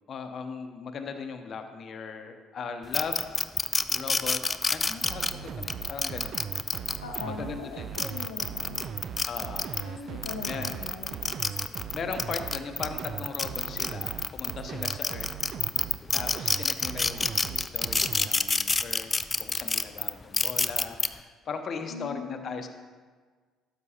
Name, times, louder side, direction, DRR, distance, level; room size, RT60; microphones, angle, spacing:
voice 1, 0.1-3.5 3.9-4.4 4.7-6.9 7.2-8.0 9.2-10.2 10.5-10.7 11.9-15.3 16.1-19.1 19.4-22.7, left 5 dB, 50° left, 6 dB, 0.8 m, -38 dB
sound 1, 2.9-7.2 7.8-9.8 10.2-14.5 14.8-21.1, left 3 dB, 25° left, 0.4 m, -28 dB
sound 2, 5.0-18.3, right 8 dB, 55° right, 0.3 m, -39 dB
voice 2, 7.0-8.9 9.8-11.5 12.0-12.1 21.9-22.7, left 4 dB, 90° left, 1 dB, 0.6 m, -41 dB
12.0 x 6.1 x 2.9 m, 1.5 s
hypercardioid pair, 55°, 0 cm